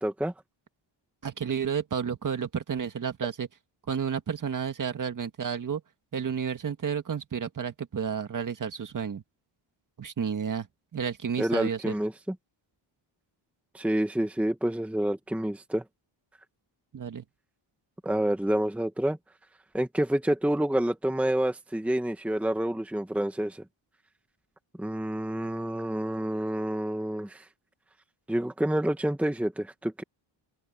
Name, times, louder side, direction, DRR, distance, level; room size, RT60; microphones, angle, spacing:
voice 1, 0.0-0.3 11.4-12.1 13.7-15.8 18.0-19.2 19.7-23.6 24.8-27.4 28.3-30.0, right 1 dB, 5° right, 1.2 m, -28 dB
voice 2, 1.2-3.5 3.9-5.8 6.1-9.2 10.0-10.7 10.9-11.9 16.9-17.2, right 7 dB, 40° right, 1.9 m, -31 dB
wide cardioid pair, 150°, 49 cm